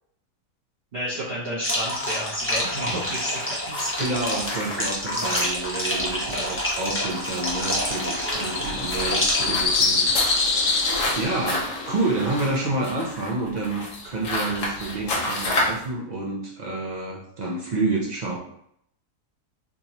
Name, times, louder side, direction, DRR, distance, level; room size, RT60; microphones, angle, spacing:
voice 1, 0.9-4.2 5.1-5.4 6.2-6.5, equal, 45° right, -9 dB, 0.9 m, -32 dB
sound 1, 1.6-9.6, left 1 dB, 20° left, 0.3 m, -28 dB
sound 2, 3.7-15.9, left 1 dB, 80° left, 1.5 m, -31 dB
voice 2, 4.0-18.4, right 2 dB, 75° right, -3 dB, 0.4 m, -29 dB
sound 3, 7.5-12.7, left 3 dB, 60° left, 0.9 m, -26 dB
3.7 x 2.7 x 2.9 m, 0.69 s
omnidirectional pair, 1.7 m